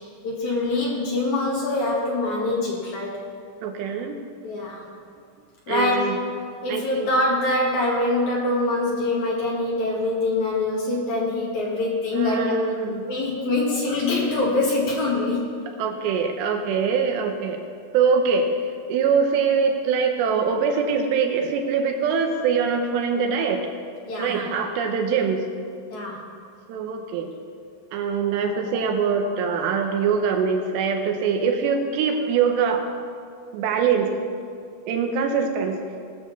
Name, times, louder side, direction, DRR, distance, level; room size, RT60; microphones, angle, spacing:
voice 1, 0.2-3.2 4.4-4.8 5.7-6.2 6.6-12.6 13.0-15.5 24.1-24.5 25.9-26.2, left 2 dB, 60° left, -3 dB, 2.1 m, -24 dB
voice 2, 3.6-4.2 5.7-6.2 6.7-7.1 12.1-13.0 15.8-17.6 17.9-18.5 18.9-23.6 24.2-25.4 26.7-27.3 27.9-32.8 33.5-34.1 34.9-35.8, right 6 dB, 80° right, 4 dB, 2.7 m, -23 dB
18.5 x 6.3 x 6.8 m, 2.3 s
omnidirectional pair, 5.7 m